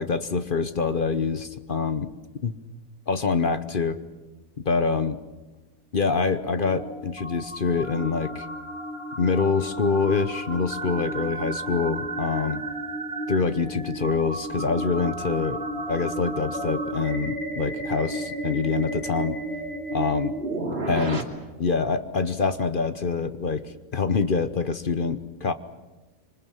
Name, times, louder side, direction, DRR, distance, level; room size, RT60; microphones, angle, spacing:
voice 1, 0.0-2.1 2.4-2.6 3.1-4.0 4.6-5.2 5.9-8.5 9.2-12.6 13.3-15.6 15.9-19.4 19.9-20.3 20.8-21.3 21.6-25.5, left 4 dB, 40° left, 10 dB, 1.0 m, -25 dB
sound 1, 6.1-21.2, right 1 dB, 45° right, 2.8 m, -33 dB
26.0 x 24.5 x 7.4 m, 1.2 s
omnidirectional pair, 1.6 m